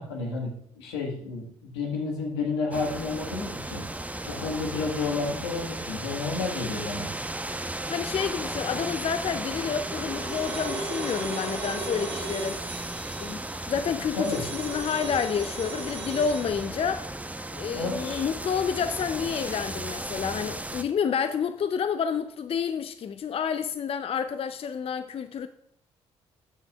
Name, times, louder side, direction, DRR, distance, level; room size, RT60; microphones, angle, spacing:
voice 1, 0.0-3.9 4.3-7.1 14.2-14.4 17.7-18.2, left 4 dB, 90° left, 1.6 m, -31 dB
sound 1, 2.7-20.8, right 1 dB, 10° right, 0.9 m, -35 dB
voice 2, 7.9-12.6 13.2-13.4 13.7-17.0 17.5-25.5, left 7 dB, 45° left, 0.5 m, -29 dB
sound 2, 9.3-16.6, right 3 dB, 80° right, 1.6 m, -38 dB
12.0 x 7.4 x 2.4 m
hypercardioid pair, 50°, 14 cm